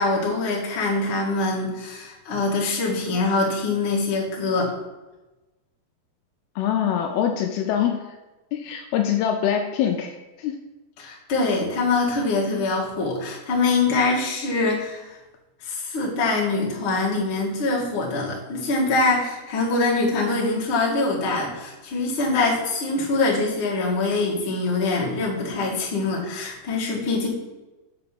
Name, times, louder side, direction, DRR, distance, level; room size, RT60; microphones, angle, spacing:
voice 1, 0.0-4.7 11.0-15.1 15.6-27.3, left 3 dB, 45° left, -4 dB, 2.0 m, -24 dB
voice 2, 6.6-8.0 8.5-10.6, left 9 dB, 80° left, 4 dB, 2.5 m, -24 dB
7.8 x 4.1 x 6.8 m, 1.1 s
omnidirectional pair, 4.7 m